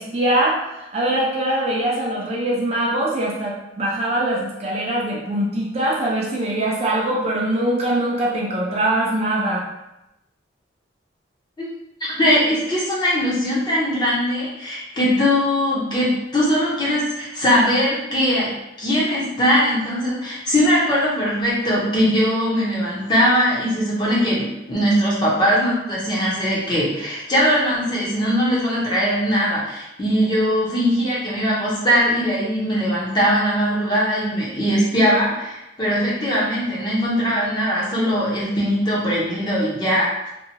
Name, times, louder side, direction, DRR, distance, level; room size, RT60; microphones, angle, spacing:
voice 1, 0.0-9.6, right 1 dB, 35° right, -3 dB, 0.4 m, -22 dB
voice 2, 12.0-18.5 18.8-40.3, equal, 20° left, -6 dB, 0.7 m, -20 dB
2.7 x 2.1 x 2.8 m, 0.90 s
head